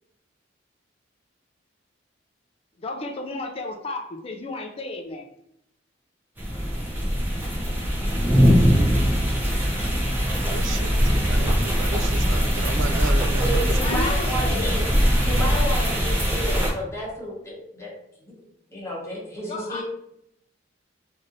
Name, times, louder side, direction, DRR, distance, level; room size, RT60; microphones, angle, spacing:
voice 1, 2.8-5.2 13.8-14.7 19.5-19.8, left 2 dB, 30° left, 3 dB, 0.4 m, -32 dB
sound 1, 6.4-16.7, equal, 10° right, 0.8 m, -21 dB
voice 2, 10.5-13.6, right 5 dB, 80° right, 11 dB, 0.3 m, -35 dB
voice 3, 13.4-14.8 15.2-17.9 18.2-18.3 18.7-19.8, equal, 15° left, -6 dB, 1.1 m, -31 dB
3.1 x 2.7 x 2.6 m, 0.76 s
head